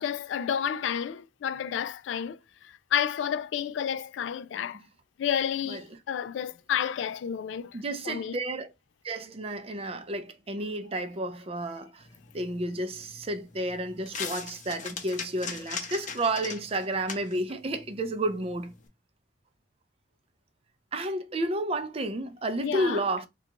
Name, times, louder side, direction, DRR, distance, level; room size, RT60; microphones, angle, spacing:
voice 1, 0.0-2.4 2.9-4.8 5.2-7.8 8.1-8.3 22.6-23.0, left 8 dB, 80° left, 0.3 m, -30 dB
voice 2, 7.7-8.7 9.0-12.1 12.3-18.7 20.9-23.3, right 1 dB, 30° right, 0.4 m, -31 dB
sound 1, 12.0-18.9, left 6 dB, 40° left, 0.6 m, -41 dB
3.6 x 2.3 x 2.8 m
head